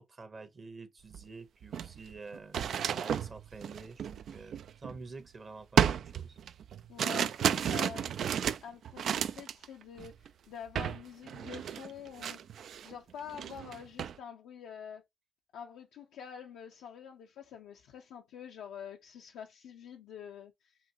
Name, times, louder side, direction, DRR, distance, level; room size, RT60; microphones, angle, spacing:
voice 1, 0.0-6.4, right 3 dB, 45° right, 1.2 m, -48 dB
sound 1, 1.1-1.2 1.6-5.2 5.8-9.7 10.0-10.3 10.8-11.0 11.3-12.9 13.3-14.2, right 8 dB, 75° right, 0.3 m, -32 dB
voice 2, 6.9-8.1 8.6-12.4 12.8-15.0 15.5-20.8, left 8 dB, 90° left, 0.5 m, -46 dB
5.5 x 2.6 x 2.9 m
supercardioid pair, 55°, 0 cm